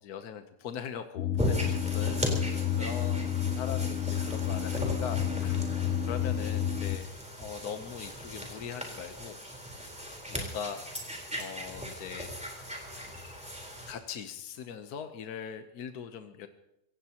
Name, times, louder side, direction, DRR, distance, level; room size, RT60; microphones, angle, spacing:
voice 1, 0.0-7.1 7.4-9.4 10.3-12.3 13.0-13.2 13.9-16.5, left 7 dB, 75° left, 7 dB, 1.4 m, -41 dB
sound 1, 1.2-7.0, left 9 dB, 55° left, 0.8 m, -30 dB
sound 2, 1.4-13.9, equal, 5° right, 3.9 m, -37 dB
25.5 x 17.0 x 2.9 m, 0.89 s
omnidirectional pair, 1.7 m